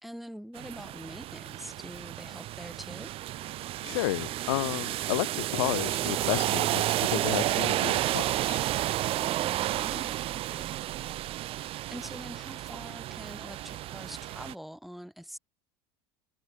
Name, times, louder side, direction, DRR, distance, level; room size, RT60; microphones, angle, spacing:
voice 1, 0.0-3.1 9.1-10.8 11.9-15.4, equal, ahead, 3.2 m, -44 dB
sound 1, 0.6-14.5, right 15 dB, 45° right, 0.9 m, -31 dB
voice 2, 3.8-8.6, left 19 dB, 80° left, 2.2 m, -32 dB
supercardioid pair, 110°, 13 cm